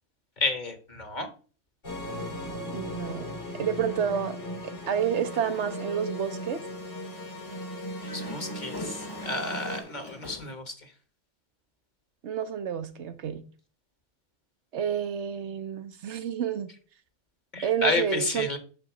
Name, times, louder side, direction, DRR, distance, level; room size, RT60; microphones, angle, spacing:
voice 1, 0.4-1.3 8.1-10.7 17.5-18.6, left 3 dB, 40° left, 1.3 m, -31 dB
sound 1, 1.8-9.8, equal, 80° left, 3.5 m, -37 dB
voice 2, 2.7-3.3 3.5-4.4 4.6-6.6 12.2-13.4 14.7-16.7 17.6-18.6, right 8 dB, 75° right, 1.0 m, -29 dB
Dog, 5.0-6.1 6.5-6.6 7.9-10.5, left 1 dB, 20° left, 1.0 m, -43 dB
9.2 x 3.9 x 5.9 m
omnidirectional pair, 1.2 m